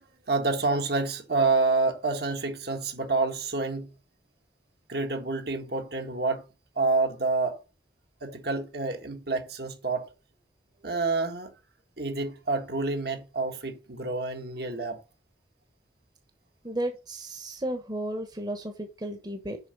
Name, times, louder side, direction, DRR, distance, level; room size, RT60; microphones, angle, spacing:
voice 1, 0.3-3.9 4.9-6.4 6.7-7.6 8.2-10.1 10.8-11.5 12.0-15.0, right 3 dB, 60° right, 1.7 m, -28 dB
voice 2, 16.6-19.6, right 1 dB, 20° right, 1.2 m, -33 dB
6.9 x 5.6 x 5.4 m
head